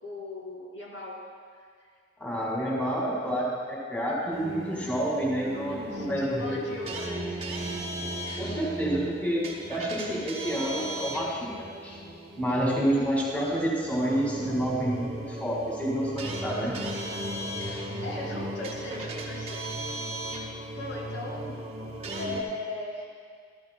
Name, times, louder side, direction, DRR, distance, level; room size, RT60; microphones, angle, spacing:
voice 1, 0.0-1.2 5.9-7.4 18.0-19.6 20.7-21.6 22.1-23.0, left 2 dB, 90° left, -3 dB, 2.3 m, -37 dB
voice 2, 2.2-6.6 8.4-12.0 12.4-16.8, equal, 10° left, -5 dB, 2.0 m, -29 dB
sound 1, 4.3-22.4, right 1 dB, 35° right, 0.8 m, -36 dB
13.5 x 13.0 x 2.2 m, 2.1 s
head